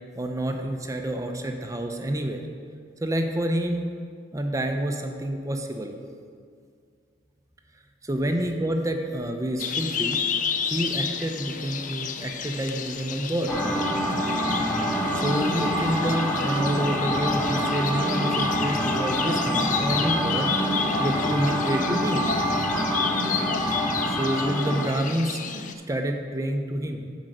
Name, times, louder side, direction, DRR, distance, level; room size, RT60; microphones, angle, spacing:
voice 1, 0.2-2.4 3.0-3.9 4.3-5.9 8.0-10.2 10.7-13.6 15.1-20.5 21.0-22.3 24.1-25.4 25.9-27.1, right 1 dB, 20° right, 4 dB, 0.5 m, -28 dB
sound 1, 9.6-25.7, left 6 dB, 45° left, 0.4 m, -31 dB
sound 2, 13.5-25.0, equal, 10° left, 1.1 m, -26 dB
7.6 x 5.1 x 6.4 m, 2.1 s
head